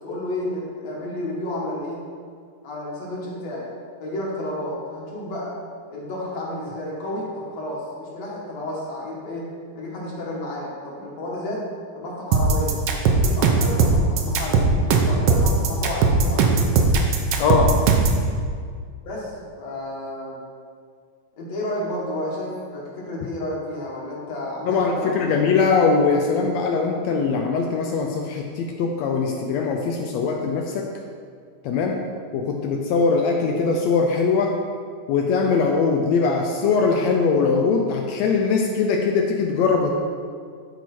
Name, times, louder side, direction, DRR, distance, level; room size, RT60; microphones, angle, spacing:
voice 1, 0.0-2.0 2.6-3.7 4.0-5.5 5.9-9.5 9.8-11.7 12.0-12.8 13.1-14.6 14.9-16.6 19.0-19.3 19.6-20.4 21.4-25.4, left 1 dB, 55° left, -4 dB, 2.5 m, -31 dB
sound 1, 12.3-18.2, right 4 dB, 85° right, 1.3 m, -18 dB
voice 2, 17.4-17.8 24.7-30.9 31.6-32.0 32.3-34.6 35.1-39.9, left 4 dB, 80° left, 2 dB, 1.5 m, -21 dB
12.0 x 4.7 x 4.4 m, 2.1 s
omnidirectional pair, 3.7 m